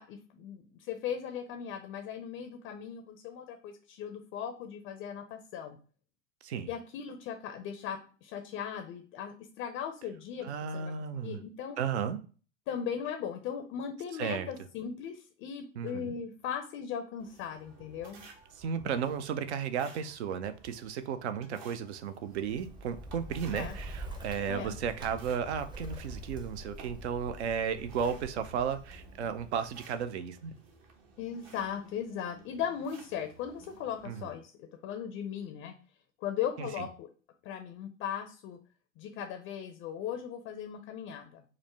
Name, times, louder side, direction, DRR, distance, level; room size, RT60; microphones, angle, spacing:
voice 1, 0.0-5.8 6.7-10.5 10.7-10.9 11.2-11.8 12.7-18.2 23.5-23.8 24.5-24.7 31.2-35.7 36.2-37.1 37.4-38.6 39.0-41.4, left 8 dB, 30° left, 6 dB, 0.5 m, -38 dB
voice 2, 10.4-11.4 11.8-12.2 14.2-14.5 15.8-16.1 18.6-30.6 34.0-34.3 36.6-36.8, right 7 dB, 60° right, 10 dB, 0.5 m, -34 dB
sound 1, 17.2-34.3, right 4 dB, 45° right, 0.9 m, -56 dB
Bird, 22.3-30.0, right 1 dB, 10° right, 0.6 m, -45 dB
4.8 x 2.1 x 3.2 m, 0.38 s
figure-of-eight pair, 80°, 38 cm